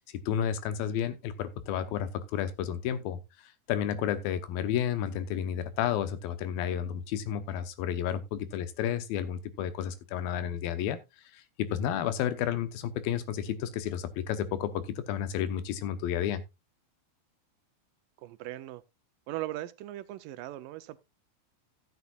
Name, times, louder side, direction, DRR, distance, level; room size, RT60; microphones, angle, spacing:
voice 1, 0.3-3.2 3.7-11.0 11.3-16.4, left 9 dB, 90° left, 2.8 m, -31 dB
voice 2, 18.2-18.8 19.3-21.0, right 15 dB, 80° right, 2.2 m, -39 dB
14.5 x 8.2 x 2.3 m
omnidirectional pair, 4.1 m